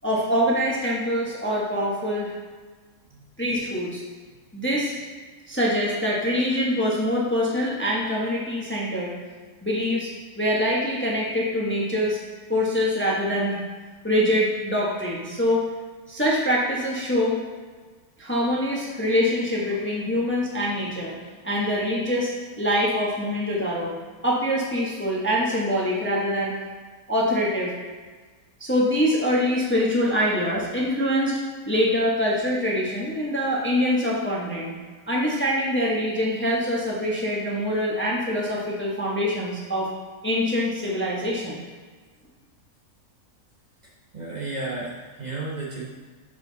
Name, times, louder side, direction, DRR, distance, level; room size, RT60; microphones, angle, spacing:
voice 1, 0.0-2.3 3.4-4.0 4.5-4.9 5.5-9.1 9.6-10.1 10.4-12.2 12.5-13.6 14.0-15.6 16.1-17.4 18.2-21.1 21.4-22.3 22.6-23.9 24.2-26.5 27.1-27.7 28.6-31.4 31.7-34.7 35.1-39.9 40.2-41.6, equal, 10° left, -4 dB, 0.9 m, -24 dB
voice 2, 44.1-45.9, right 2 dB, 35° right, -6 dB, 1.0 m, -32 dB
7.4 x 5.1 x 3.9 m, 1.4 s
omnidirectional pair, 1.5 m